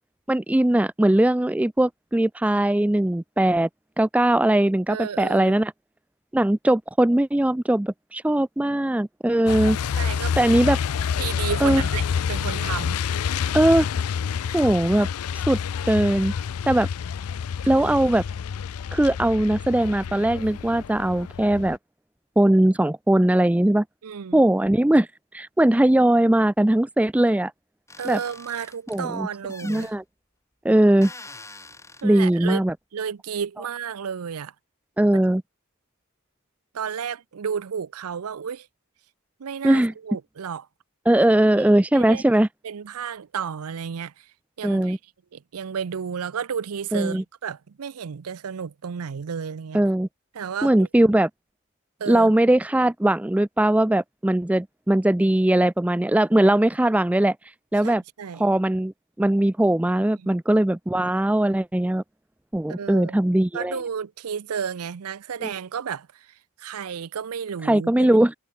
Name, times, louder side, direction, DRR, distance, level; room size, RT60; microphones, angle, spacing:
voice 1, 0.3-3.7 4.0-5.7 6.3-9.8 10.4-10.8 11.6-11.8 13.5-13.9 14.5-15.1 15.5-15.6 15.9-16.3 16.7-16.9 17.7-18.2 18.9-21.8 22.4-23.8 24.3-25.1 25.3-27.5 28.0-28.2 28.9-29.3 29.6-30.0 30.6-31.1 32.0-32.7 35.0-35.4 39.6-39.9 41.1-42.5 44.6-45.0 46.9-47.2 49.7-50.1 50.6-51.3 52.1-57.4 57.7-58.0 58.4-58.9 59.2-62.0 62.5-63.8 65.4-65.5 67.6-68.3, right 1 dB, 5° right, 0.3 m, -20 dB
voice 2, 4.9-5.6 9.9-10.4 11.2-13.0 16.8-16.9 17.7-17.9 24.0-24.4 28.0-29.9 32.0-32.6 32.9-34.5 35.1-35.2 36.7-38.7 39.4-40.7 41.5-44.3 44.6-45.0 45.3-49.8 50.3-50.9 52.0-52.3 57.8-58.4 60.2-60.3 62.7-63.2 63.5-68.1, right 7 dB, 85° right, 0.5 m, -32 dB
Truck, 9.5-21.8, left 7 dB, 85° left, 0.4 m, -28 dB
sound 1, 27.9-29.0 29.5-29.9 31.0-32.0, left 3 dB, 15° left, 5.9 m, -44 dB
head